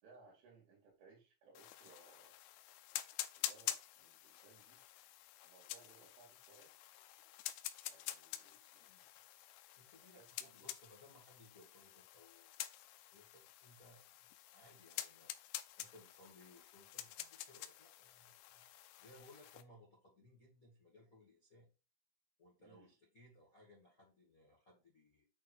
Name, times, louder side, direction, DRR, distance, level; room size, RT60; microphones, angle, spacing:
voice 1, 0.0-2.3 3.4-4.8 5.4-6.7 7.9-8.9 10.0-10.7 22.6-22.9, right 4 dB, 75° right, -2 dB, 5.3 m, -64 dB
sound 1, 1.6-19.6, left 14 dB, 85° left, 3.0 m, -48 dB
voice 2, 8.5-9.1 9.7-12.5 13.0-14.0 14.5-18.7 19.0-21.7 22.4-25.2, left 1 dB, 55° left, -4 dB, 0.9 m, -64 dB
9.3 x 4.3 x 4.6 m, 0.32 s
omnidirectional pair, 5.7 m